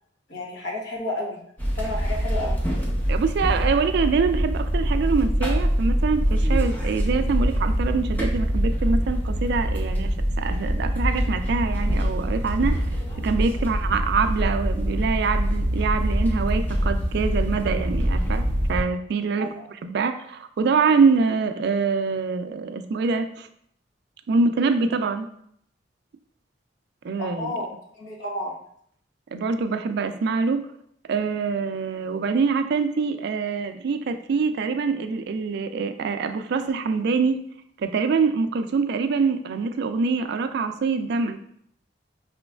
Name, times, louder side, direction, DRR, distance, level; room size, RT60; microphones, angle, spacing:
voice 1, 0.3-1.4 1.7-2.5 13.5-13.7 19.4-19.7 27.2-27.7 27.9-28.5, left 1 dB, 70° left, -2 dB, 1.1 m, -31 dB
sound 1, 1.6-18.8, equal, 10° left, 0.7 m, -24 dB
voice 2, 3.1-12.8 13.2-18.4 18.7-19.5 19.8-23.5 24.3-25.3 27.0-27.5 29.3-30.6 31.1-37.4 37.8-41.4, right 4 dB, 65° right, 8 dB, 0.3 m, -24 dB
5.1 x 3.1 x 2.3 m, 0.68 s
head